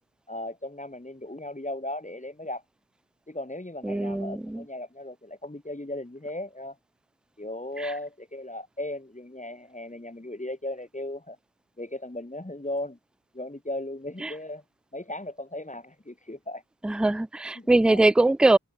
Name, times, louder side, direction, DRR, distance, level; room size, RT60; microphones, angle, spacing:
voice 1, 0.3-2.6 3.3-6.8 7.4-11.4 11.8-13.0 13.3-14.6 14.9-16.6 17.6-18.0, left 1 dB, 20° left, 3.7 m, -36 dB
voice 2, 3.8-4.6 7.8-7.9 14.2-14.3 16.8-18.6, right 2 dB, ahead, 0.5 m, -22 dB
open air
cardioid pair, 45°, 37 cm